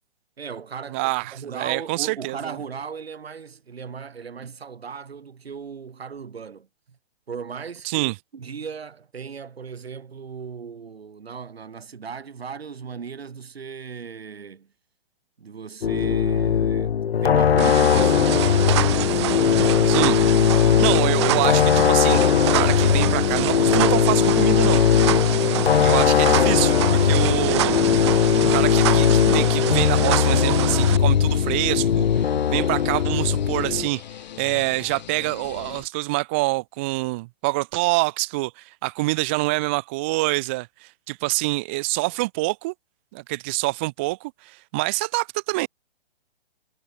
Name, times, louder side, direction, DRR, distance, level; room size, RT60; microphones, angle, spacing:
voice 1, 0.4-7.0 7.3-14.7 15.4-18.8 32.7-32.9, right 6 dB, 80° right, 7.1 m, -37 dB
voice 2, 0.9-2.6 7.8-8.1 19.9-20.2 20.8-22.2 22.5-24.8 25.8-27.8 28.5-34.0 34.4-42.7 43.1-45.7, right 24 dB, 10° right, 0.5 m, -26 dB
sound 1, 15.8-33.9, left 8 dB, 85° left, 1.0 m, -19 dB
sound 2, 17.6-31.0, right 15 dB, 30° right, 1.1 m, -27 dB
sound 3, 24.3-35.8, left 11 dB, 45° left, 7.4 m, -39 dB
hypercardioid pair, 160°, 30 cm